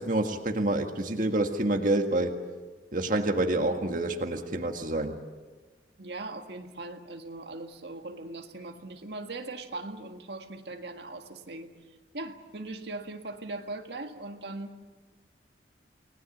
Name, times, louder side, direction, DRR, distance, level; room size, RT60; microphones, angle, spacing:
voice 1, 0.0-2.3 2.9-5.2, right 1 dB, 50° right, 4 dB, 1.7 m, -27 dB
voice 2, 6.0-11.7 12.1-14.9, right 2 dB, 75° right, 4 dB, 1.8 m, -40 dB
29.5 x 20.0 x 7.3 m, 1.3 s
head